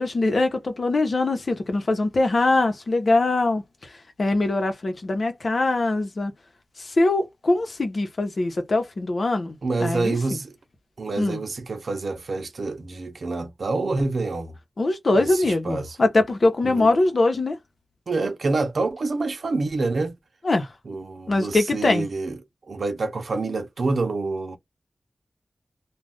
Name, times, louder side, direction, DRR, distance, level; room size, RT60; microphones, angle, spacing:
voice 1, 0.0-3.6 4.2-6.3 6.8-10.4 11.2-11.4 14.8-17.6 20.4-20.7 21.3-22.1, left 2 dB, 70° left, 0.8 m, -22 dB
voice 2, 9.6-10.5 11.0-14.5 15.1-16.0 16.6-16.9 18.1-20.2 20.9-22.4 22.7-24.6, right 3 dB, 85° right, 0.6 m, -27 dB
2.4 x 2.3 x 3.4 m
wide cardioid pair, 60°, 0 cm